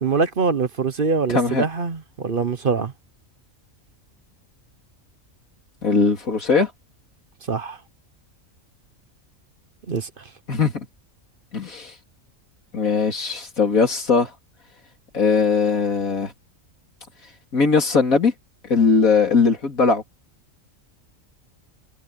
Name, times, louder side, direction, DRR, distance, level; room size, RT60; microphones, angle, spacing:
voice 1, 0.0-2.9 7.5-7.8 9.9-10.2, right 5 dB, 45° right, 1.0 m, -23 dB
voice 2, 1.3-1.7 5.8-6.7 10.5-10.9 11.5-11.9 12.7-14.3 15.1-16.3 17.5-18.3 18.6-20.0, left 4 dB, 90° left, 3.6 m, -19 dB
omnidirectional pair, 1.4 m